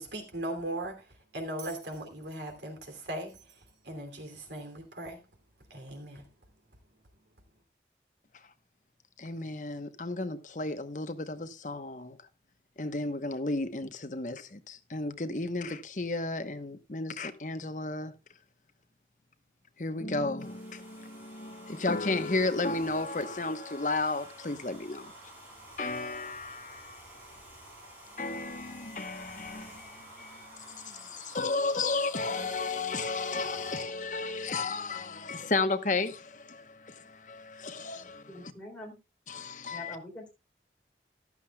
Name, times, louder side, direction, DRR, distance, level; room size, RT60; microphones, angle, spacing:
voice 1, 0.0-5.2 5.7-6.3, right 1 dB, 80° right, 2.8 m, -39 dB
Bell, 1.6-4.8 5.9-6.0, right 7 dB, 65° right, 2.8 m, -55 dB
voice 2, 9.2-12.2 12.8-18.1 19.8-25.1 25.8-27.0 28.2-38.2 39.3-40.0, left 3 dB, 45° left, 1.0 m, -33 dB
Domestic sounds home sounds, 20.4-33.8, right 1 dB, 10° right, 5.9 m, -51 dB
voice 3, 38.3-39.0 39.7-40.3, left 1 dB, 5° left, 3.3 m, -44 dB
14.5 x 11.5 x 2.3 m
head